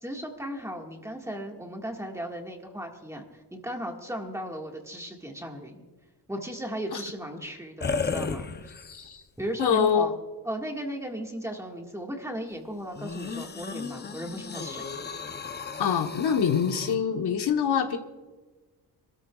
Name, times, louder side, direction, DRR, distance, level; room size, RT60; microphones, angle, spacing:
voice 1, 0.0-5.8 6.3-8.7 9.4-10.2 10.4-14.9, equal, 5° right, 1 dB, 1.8 m, -36 dB
sound 1, 7.8-9.1 9.7-9.8 12.9-16.9, left 5 dB, 25° left, 0.7 m, -34 dB
voice 2, 8.8-9.2 9.6-10.1 15.8-18.0, left 7 dB, 70° left, 5 dB, 1.2 m, -25 dB
27.0 x 13.5 x 2.4 m, 1.3 s
wide cardioid pair, 140°, 41 cm